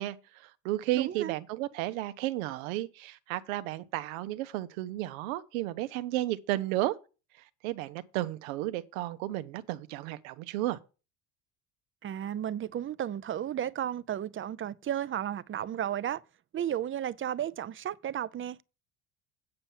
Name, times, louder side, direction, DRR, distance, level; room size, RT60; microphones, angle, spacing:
voice 1, 0.0-7.0 7.6-10.8, right 16 dB, 85° right, 0.9 m, -33 dB
voice 2, 0.9-1.3 12.0-16.2 16.5-18.6, right 10 dB, 30° right, 0.6 m, -33 dB
8.9 x 5.5 x 7.2 m
supercardioid pair, 90°, 40 cm